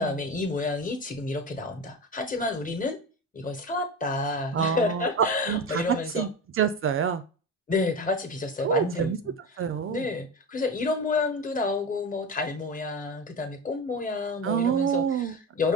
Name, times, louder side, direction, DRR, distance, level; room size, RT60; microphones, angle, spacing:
voice 1, 0.0-3.0 3.3-6.3 7.7-9.3 9.9-15.7, left 3 dB, 25° left, 1.1 m, -30 dB
voice 2, 4.5-7.2 8.6-9.2 9.6-10.1 14.4-15.4, right 7 dB, 45° right, 0.4 m, -27 dB
4.9 x 2.3 x 3.5 m
cardioid pair, 90°, 30 cm